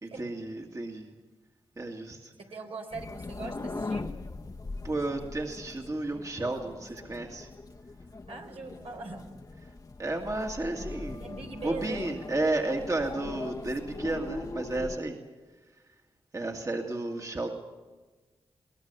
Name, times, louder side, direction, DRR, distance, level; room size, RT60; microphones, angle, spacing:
voice 1, 0.0-1.1 1.8-2.3 4.8-7.5 10.0-11.2 11.6-15.2 16.3-17.5, right 2 dB, 35° right, 1 dB, 2.1 m, -32 dB
voice 2, 2.4-4.0 8.3-9.3 10.6-10.8 11.1-12.0, right 3 dB, 80° right, 1 dB, 3.9 m, -41 dB
sound 1, 2.9-15.0, left 3 dB, 40° left, 1.2 m, -40 dB
22.5 x 19.0 x 6.9 m, 1.3 s
cardioid pair, 65°, 10 cm